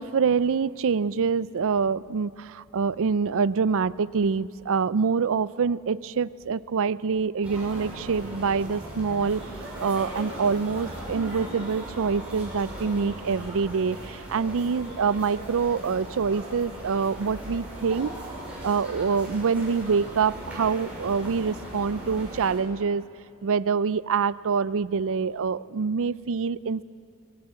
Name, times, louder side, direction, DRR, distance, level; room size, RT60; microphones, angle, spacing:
voice 1, 0.0-9.5 9.8-18.1 18.6-23.0 23.4-26.8, right 5 dB, 65° right, 18 dB, 0.5 m, -25 dB
sound 1, 7.4-22.6, right 1 dB, 5° right, 6.9 m, -38 dB
22.5 x 17.5 x 8.9 m, 2.4 s
head